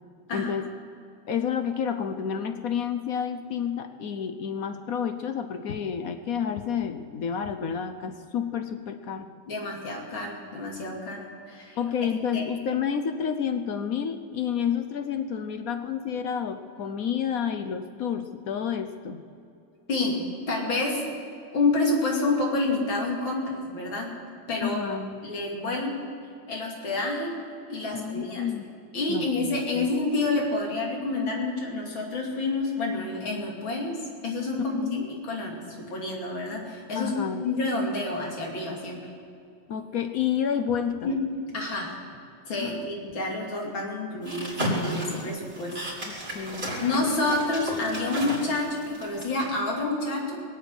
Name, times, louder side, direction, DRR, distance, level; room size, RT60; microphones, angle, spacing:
voice 1, 0.3-0.7 1.3-9.3 11.8-19.2 24.6-25.3 27.9-28.6 29.1-29.9 34.7-35.0 36.9-37.4 39.7-41.1 42.6-42.8 46.0-46.7, left 7 dB, 60° left, 8 dB, 1.0 m, -30 dB
voice 2, 9.5-11.8 12.3-12.4 19.9-20.2 20.5-21.0 21.5-24.1 24.5-24.8 25.2-25.9 26.5-27.3 27.7-28.5 28.9-35.6 35.9-39.1 41.0-41.2 41.5-41.9 42.5-45.8 46.2-46.4 46.8-50.4, left 2 dB, 90° left, 0 dB, 3.3 m, -28 dB
sound 1, 44.3-49.2, equal, 30° right, 3.5 m, -32 dB
21.0 x 8.1 x 7.8 m, 2.6 s
omnidirectional pair, 2.1 m